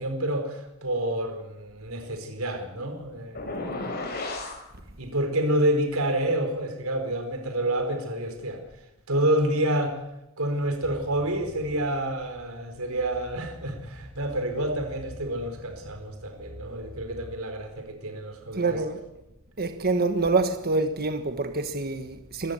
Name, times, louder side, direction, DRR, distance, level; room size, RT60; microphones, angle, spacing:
voice 1, 0.0-3.5 5.0-8.6 9.1-10.0 10.4-18.8, right 1 dB, 80° right, 4.4 m, -28 dB
sound 1, 3.4-4.6, left 2 dB, 50° left, 5.5 m, -33 dB
sound 2, 10.8-18.3, equal, 15° left, 5.7 m, -47 dB
voice 2, 18.5-19.0 19.6-22.5, right 3 dB, 45° right, 1.4 m, -26 dB
25.5 x 15.0 x 9.4 m
head